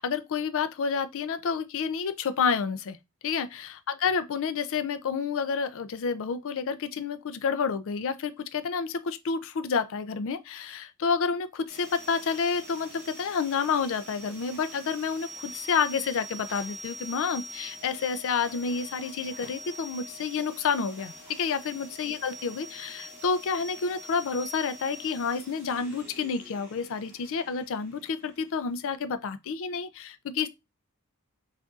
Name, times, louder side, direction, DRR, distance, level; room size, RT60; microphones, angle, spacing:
voice 1, 0.0-3.0 3.2-30.5, left 5 dB, 65° left, 0.4 m, -29 dB
sound 1, 11.7-28.9, right 1 dB, 10° right, 1.9 m, -45 dB
6.2 x 2.6 x 2.4 m
head